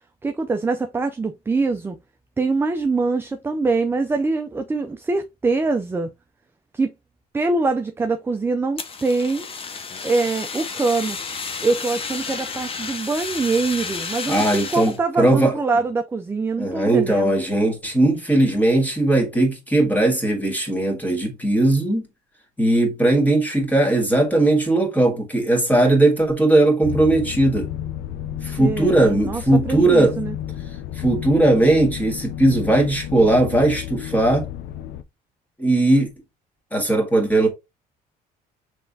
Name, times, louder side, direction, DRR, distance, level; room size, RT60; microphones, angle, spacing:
voice 1, 0.2-2.0 2.4-6.1 6.7-6.9 7.3-9.5 10.0-11.2 11.6-17.4 28.6-30.4, right 3 dB, 15° right, 0.4 m, -23 dB
Fire, 8.8-15.0, left 5 dB, 35° left, 0.7 m, -31 dB
voice 2, 14.3-15.5 16.6-22.0 22.6-27.7 28.4-30.2 31.0-34.5 35.6-36.1 36.7-37.5, right 2 dB, 10° left, 1.8 m, -18 dB
sound 1, 26.8-35.0, left 11 dB, 85° left, 0.5 m, -32 dB
5.9 x 3.4 x 2.7 m
cardioid pair, 110°, 17 cm